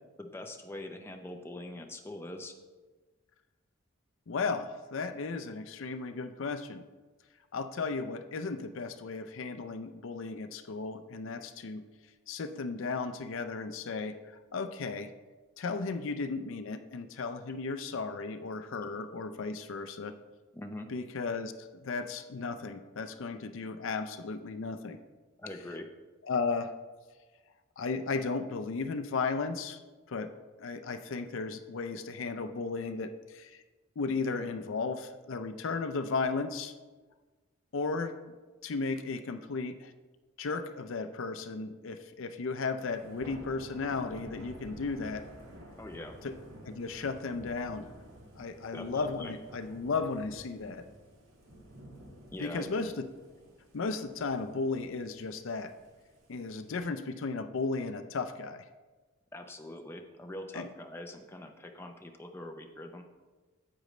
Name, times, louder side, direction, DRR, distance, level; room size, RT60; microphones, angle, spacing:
voice 1, 0.2-2.5 18.8-18.9 20.5-20.9 25.4-25.9 45.8-46.1 48.7-49.3 52.3-52.9 59.3-63.0, left 1 dB, 10° left, 4 dB, 0.5 m, -43 dB
voice 2, 4.3-6.8 7.5-11.8 12.3-15.1 15.6-20.2 20.9-25.0 26.3-26.8 27.8-29.8 30.1-30.3 30.6-33.6 34.0-36.7 37.7-38.2 38.6-39.9 40.4-45.3 46.2-46.3 46.6-47.9 48.4-50.9 52.4-53.1 53.7-55.7 56.3-58.6 60.5-60.7, left 4 dB, 65° left, 10 dB, 0.5 m, -35 dB
Thunder / Rain, 42.8-56.8, equal, 70° right, 1.7 m, -51 dB
10.0 x 7.7 x 3.1 m, 1.3 s
head